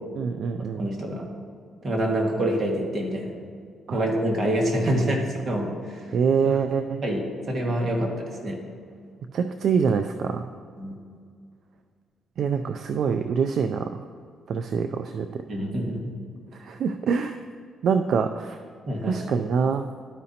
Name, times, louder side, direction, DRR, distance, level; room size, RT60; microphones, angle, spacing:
voice 1, 0.2-0.8 3.9-4.0 4.9-5.2 6.1-7.0 9.3-10.4 12.4-14.0 14.5-15.4 16.6-17.4 17.8-18.6 19.1-19.8, right 6 dB, 65° right, 7 dB, 0.3 m, -25 dB
voice 2, 0.8-1.3 1.8-3.3 3.9-6.1 6.4-6.6 7.0-8.6 10.8-10.9 15.5-16.1 18.9-19.2, equal, 40° right, -1 dB, 1.7 m, -26 dB
12.0 x 5.1 x 2.8 m, 2.2 s
cardioid pair, 90°, 0 cm